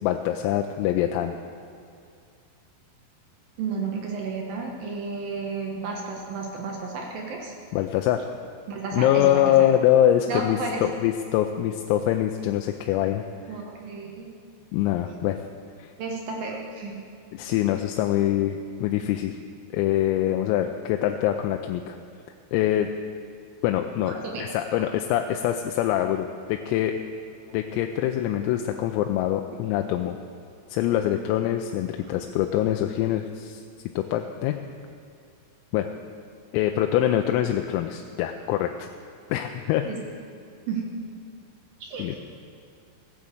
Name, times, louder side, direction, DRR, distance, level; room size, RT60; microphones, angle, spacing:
voice 1, 0.0-1.4 7.7-8.2 8.9-13.2 14.7-15.4 15.8-15.9 17.3-19.4 19.7-22.0 22.5-22.9 23.6-27.0 27.5-30.2 30.7-33.6 34.0-34.6 35.7-35.9 36.5-38.9 39.3-39.8 42.0-42.2, left 12 dB, 90° left, 5 dB, 3.3 m, -24 dB
voice 2, 3.6-7.5 8.7-9.4 10.3-10.8 13.5-14.3 16.0-17.0 24.0-24.5 24.7-24.9 32.1-32.2 39.8-40.0 40.7-40.8 41.8-42.2, right 4 dB, 75° right, 0 dB, 2.2 m, -32 dB
15.5 x 8.6 x 7.7 m, 2.4 s
omnidirectional pair, 5.9 m